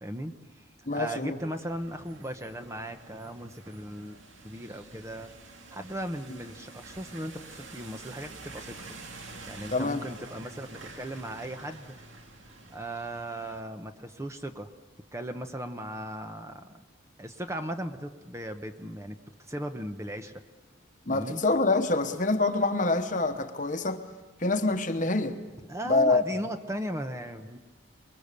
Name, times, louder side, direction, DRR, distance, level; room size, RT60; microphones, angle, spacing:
voice 1, 0.0-0.6 0.9-5.3 5.7-9.0 9.5-12.0 12.7-14.7 15.1-16.8 17.2-20.4 21.1-21.4 25.7-27.6, right 1 dB, 15° right, 0.9 m, -37 dB
voice 2, 0.9-1.4 9.7-10.0 21.1-24.0 24.4-25.4 25.9-26.2, left 3 dB, 40° left, 1.2 m, -26 dB
sound 1, 1.4-13.6, right 3 dB, 80° right, 2.2 m, -48 dB
24.5 x 22.0 x 6.8 m
head